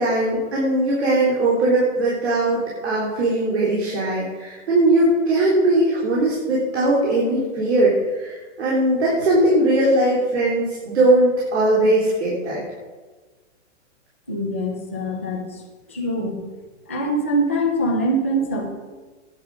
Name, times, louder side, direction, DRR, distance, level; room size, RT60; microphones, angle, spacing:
voice 1, 0.0-12.6, right 1 dB, 60° right, -5 dB, 3.7 m, -19 dB
voice 2, 14.3-15.6 15.9-16.4 16.9-18.7, right 1 dB, 10° left, -3 dB, 0.4 m, -23 dB
13.5 x 10.0 x 5.0 m, 1.3 s
hypercardioid pair, 180°, 37 cm